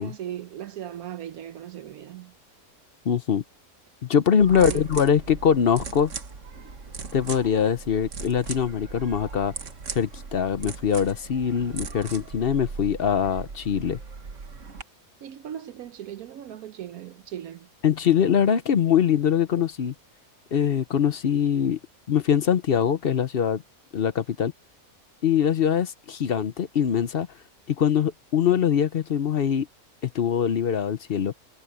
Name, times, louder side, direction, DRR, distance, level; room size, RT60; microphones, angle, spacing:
voice 1, 0.0-2.3 4.6-4.9 15.2-17.7, right 11 dB, 75° right, 1.2 m, -38 dB
voice 2, 3.0-3.4 4.1-6.1 7.1-9.5 9.9-14.0 17.8-19.9 20.5-21.8 22.1-23.6 23.9-24.5 25.2-27.3 27.7-29.7 30.0-31.3, left 8 dB, 50° left, 0.8 m, -23 dB
sound 1, 4.4-14.8, right 5 dB, 55° right, 1.8 m, -38 dB
omnidirectional pair, 1.6 m